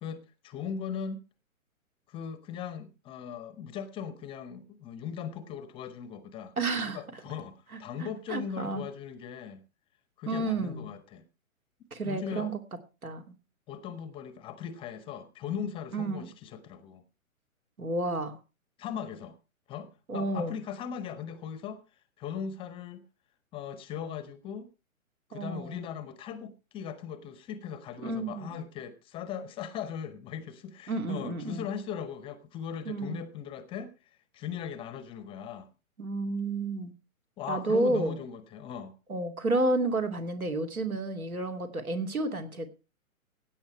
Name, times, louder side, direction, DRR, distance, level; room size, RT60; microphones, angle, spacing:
voice 1, 0.0-1.2 2.1-9.6 10.2-11.2 12.0-12.5 13.7-17.0 18.8-19.4 19.7-23.1 23.5-24.7 25.3-35.7 37.4-39.0, left 7 dB, 10° left, 13 dB, 0.7 m, -39 dB
voice 2, 6.6-7.0 8.0-8.8 10.3-10.9 11.9-12.6 13.0-13.2 15.9-16.3 17.8-18.4 20.1-20.5 25.3-25.8 28.0-28.6 30.9-31.7 32.8-33.2 36.0-36.9 37.5-38.2 39.1-42.7, right 2 dB, 80° right, 6 dB, 2.8 m, -31 dB
16.5 x 9.0 x 4.6 m, 0.32 s
figure-of-eight pair, 125°, 42 cm